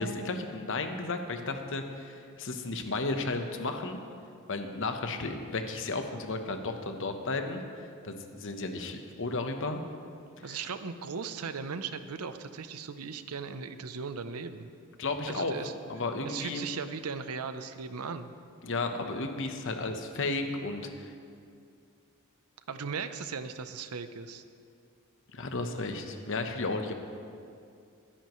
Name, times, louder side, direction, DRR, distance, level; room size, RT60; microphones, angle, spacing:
voice 1, 0.0-4.0 4.5-9.8 10.4-10.6 15.0-15.5 15.9-16.6 18.6-21.1 25.3-26.9, left 3 dB, 60° left, 6 dB, 1.0 m, -33 dB
voice 2, 10.4-14.7 15.3-15.7 16.2-18.3 22.7-24.4, right 5 dB, 90° right, 10 dB, 0.7 m, -38 dB
22.5 x 10.0 x 3.1 m, 2.4 s
head